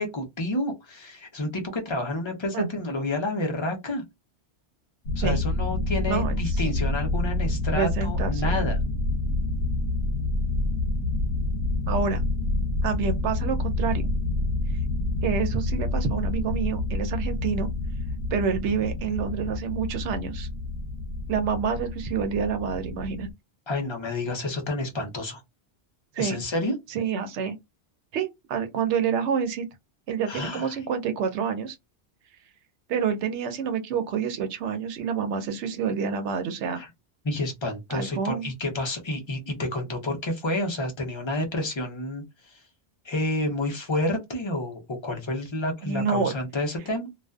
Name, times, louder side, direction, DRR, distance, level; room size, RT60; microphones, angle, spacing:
voice 1, 0.0-4.0 5.2-8.8 23.7-25.4 26.2-26.7 30.3-30.8 36.8-36.9 37.2-42.6 43.0-47.1, left 1 dB, 30° left, 0.6 m, -29 dB
sound 1, 5.1-23.3, left 2 dB, 75° left, 1.0 m, -28 dB
voice 2, 6.1-6.6 7.7-8.7 11.9-12.2 12.8-14.0 15.2-17.7 18.3-20.5 21.3-23.3 26.1-26.4 26.9-27.5 28.1-29.6 30.1-31.8 32.9-36.8 37.9-38.5 45.8-46.3, right 6 dB, 85° right, 0.9 m, -28 dB
2.5 x 2.2 x 2.2 m
omnidirectional pair, 1.2 m